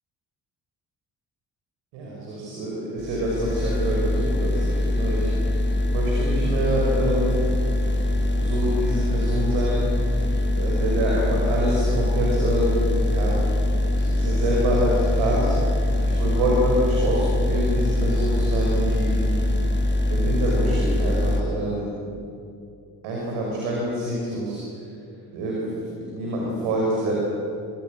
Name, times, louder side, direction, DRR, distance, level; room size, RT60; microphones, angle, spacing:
voice 1, 1.9-5.5 5.9-7.5 8.4-13.5 14.0-19.2 20.1-21.9 23.0-24.6 25.3-27.2, right 1 dB, 70° right, -3 dB, 6.0 m, -26 dB
sound 1, 3.0-21.4, left 1 dB, 20° left, 3.7 m, -23 dB
27.5 x 25.0 x 6.6 m, 2.6 s
figure-of-eight pair, 45°, 50 cm